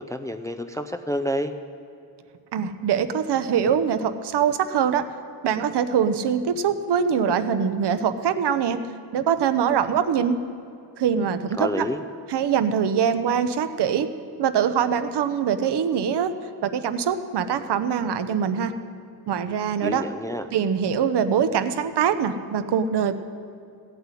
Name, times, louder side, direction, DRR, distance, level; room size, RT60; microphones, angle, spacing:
voice 1, 0.0-1.5 11.6-12.0 19.8-20.5, equal, 10° left, 8 dB, 0.4 m, -28 dB
voice 2, 2.5-5.0 5.4-8.8 9.1-10.4 11.0-11.9 12.3-14.1 14.4-16.3 16.6-18.7 19.3-20.1 20.5-23.1, right 7 dB, 70° right, 11 dB, 0.9 m, -23 dB
15.5 x 8.0 x 9.8 m, 2.5 s
wide cardioid pair, 160°, 42 cm